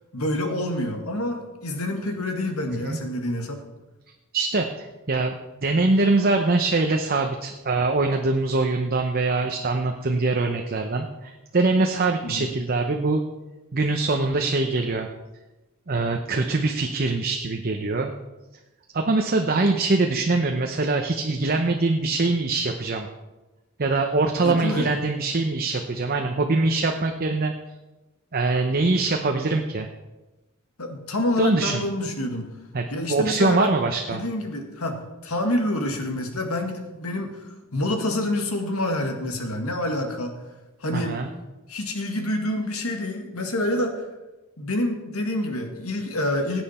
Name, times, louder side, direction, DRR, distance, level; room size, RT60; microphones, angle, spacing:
voice 1, 0.1-3.6 12.2-12.5 24.4-24.9 30.8-32.5 32.9-33.7 34.1-37.4 37.7-40.3 40.8-41.2 41.7-44.1 44.6-46.6, left 1 dB, 90° left, 4 dB, 1.9 m, -27 dB
voice 2, 4.3-5.4 5.6-13.2 13.7-15.1 15.9-18.1 18.9-23.1 23.8-27.5 28.3-29.9 31.4-31.8 32.7-34.2 40.9-41.3, right 3 dB, 45° right, 4 dB, 0.8 m, -23 dB
16.5 x 9.0 x 4.3 m, 1.1 s
head